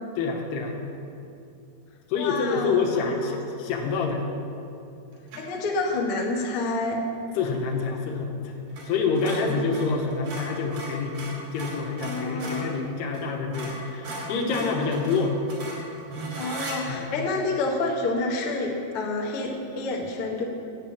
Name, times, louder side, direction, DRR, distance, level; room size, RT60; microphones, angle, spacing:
voice 1, 0.2-0.7 2.1-4.2 7.4-8.6 8.8-11.2 11.5-15.4 16.9-17.1, left 4 dB, 80° left, 2 dB, 3.1 m, -27 dB
voice 2, 2.2-2.8 5.4-7.0 12.0-12.9 14.4-14.7 16.3-20.4, left 3 dB, 65° left, -1 dB, 1.3 m, -28 dB
sound 1, 5.3-5.6 8.7-8.9 9.1-12.7 13.1-13.2 13.5-16.8, right 2 dB, 90° right, 4.8 m, -37 dB
9.7 x 8.9 x 7.2 m, 2.7 s
omnidirectional pair, 4.8 m